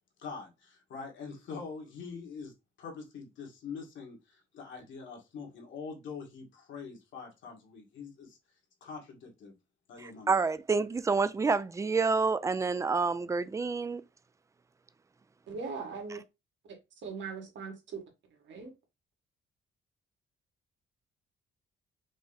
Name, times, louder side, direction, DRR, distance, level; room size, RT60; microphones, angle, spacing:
voice 1, 0.2-2.5 2.8-8.4 8.8-9.5 9.9-10.4, left 5 dB, 70° left, 1.8 m, -44 dB
voice 2, 10.0-14.0, right 4 dB, 15° right, 0.4 m, -28 dB
voice 3, 15.5-16.2 17.0-18.0 18.4-18.7, right 5 dB, 65° right, 1.9 m, -39 dB
5.2 x 2.1 x 4.0 m
cardioid pair, 90°, 20 cm